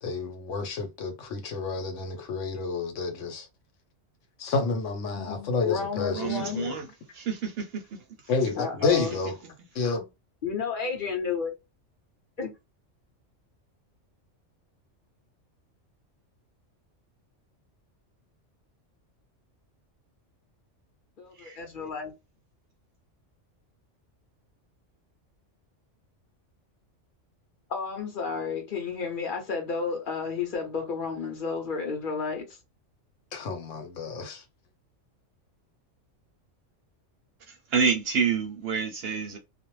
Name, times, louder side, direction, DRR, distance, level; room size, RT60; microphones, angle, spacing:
voice 1, 0.0-3.5 4.4-6.8 8.3-9.4 9.7-10.1 33.3-34.4, left 4 dB, 80° left, 1.1 m, -30 dB
voice 2, 5.1-6.7 8.6-9.2 10.4-11.5 12.4-12.5 21.2-22.1 27.7-32.6, left 5 dB, 50° left, 0.9 m, -32 dB
voice 3, 6.1-6.9 7.1-8.0 21.3-21.6 37.5-39.4, right 6 dB, 65° right, 0.7 m, -28 dB
2.4 x 2.0 x 3.0 m
omnidirectional pair, 1.3 m